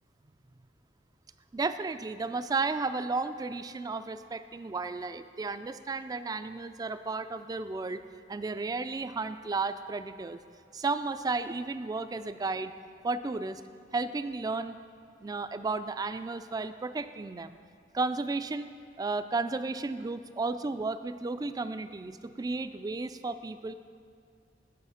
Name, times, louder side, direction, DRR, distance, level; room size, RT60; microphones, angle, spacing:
voice 1, 1.5-8.0 8.3-10.4 10.7-12.7 13.0-13.6 13.9-14.8 15.2-17.6 17.9-18.7 19.0-23.7, right 3 dB, 20° right, 11 dB, 0.3 m, -33 dB
9.6 x 7.1 x 5.6 m, 2.4 s
head